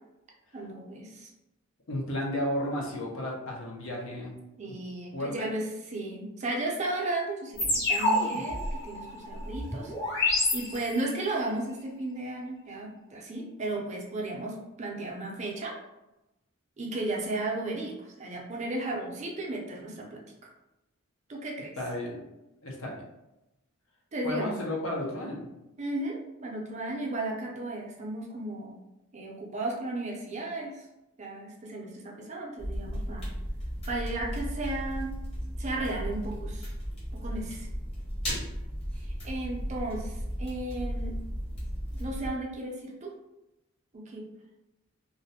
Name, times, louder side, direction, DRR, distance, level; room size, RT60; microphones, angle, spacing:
voice 1, 0.5-1.3 4.6-9.9 10.5-15.7 16.8-20.5 21.3-21.7 24.1-24.6 25.8-28.7 29.1-30.9 31.2-33.3 33.9-35.1 35.6-36.7 37.2-37.7 38.9-41.1 42.0-43.2 43.9-44.2, right 2 dB, 35° right, -1 dB, 0.4 m, -34 dB
voice 2, 1.9-4.4 5.1-5.5 21.8-22.3 22.6-23.0 24.2-25.5 38.2-38.4, left 1 dB, 70° left, -2 dB, 0.6 m, -33 dB
sound 1, 7.6-11.2, left 2 dB, 55° left, 1.0 m, -28 dB
sound 2, 32.6-42.3, equal, 30° left, 0.8 m, -35 dB
2.4 x 2.1 x 2.6 m, 0.95 s
head